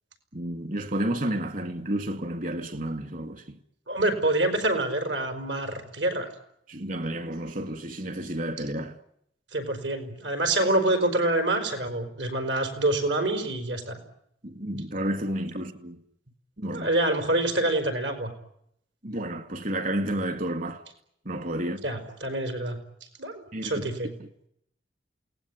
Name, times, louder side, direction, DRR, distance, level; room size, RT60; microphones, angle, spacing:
voice 1, 0.3-3.6 6.7-9.0 14.4-16.0 16.6-16.9 19.0-20.8 21.3-21.8 23.5-23.9 24.2-24.5, right 1 dB, 50° right, 2.2 m, -31 dB
voice 2, 3.9-6.3 9.5-14.0 16.7-18.3 21.8-22.8 23.2-24.1, right 1 dB, 80° right, 5.0 m, -26 dB
28.0 x 19.0 x 9.8 m
head